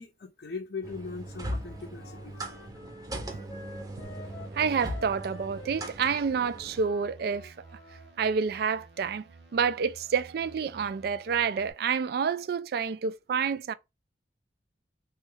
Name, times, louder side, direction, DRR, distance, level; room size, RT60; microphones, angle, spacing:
voice 1, 0.0-2.4, left 4 dB, 60° left, 0.5 m, -40 dB
sound 1, 0.8-6.8, right 1 dB, 20° right, 0.7 m, -39 dB
Wind instrument woodwind instrument, 1.5-8.1, left 2 dB, 25° left, 0.9 m, -50 dB
sound 2, 4.0-11.7, right 3 dB, 80° right, 0.8 m, -53 dB
voice 2, 4.5-7.5 8.2-9.3 9.5-13.7, right 6 dB, 60° right, 0.3 m, -28 dB
3.1 x 2.3 x 3.1 m
head